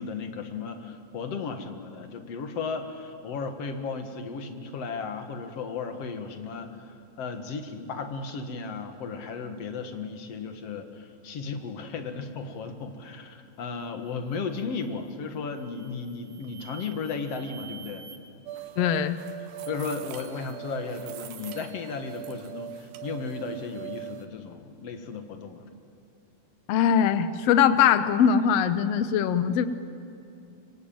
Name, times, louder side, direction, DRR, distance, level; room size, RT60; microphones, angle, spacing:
voice 1, 0.0-18.1 19.7-25.7, left 5 dB, 50° left, 7 dB, 2.3 m, -35 dB
sound 1, 13.7-14.0 14.5-15.0 15.5-18.2, right 8 dB, 60° right, 3.1 m, -49 dB
sound 2, 18.5-24.3, right 13 dB, 75° right, 3.2 m, -40 dB
voice 2, 18.8-19.2 26.7-29.7, left 8 dB, 90° left, 11 dB, 1.4 m, -21 dB
25.0 x 24.5 x 8.9 m, 2.6 s
omnidirectional pair, 4.2 m